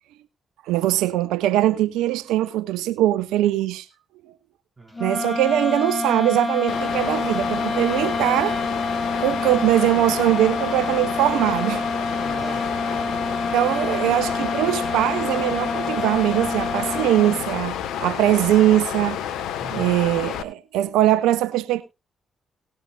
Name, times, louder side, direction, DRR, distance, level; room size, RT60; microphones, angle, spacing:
voice 1, 0.7-3.9 5.0-8.6 9.2-11.9 13.5-17.7 18.0-19.2 19.7-21.8, right 14 dB, 75° right, 0.8 m, -21 dB
voice 2, 4.8-5.1 12.2-13.4 13.6-13.9 19.6-20.0, right 3 dB, 30° right, 4.0 m, -42 dB
sound 1, 4.9-17.6, left 2 dB, 30° left, 2.6 m, -27 dB
Water, 6.7-20.4, left 9 dB, 75° left, 1.1 m, -30 dB
19.0 x 8.8 x 2.3 m
hypercardioid pair, 40°, 0 cm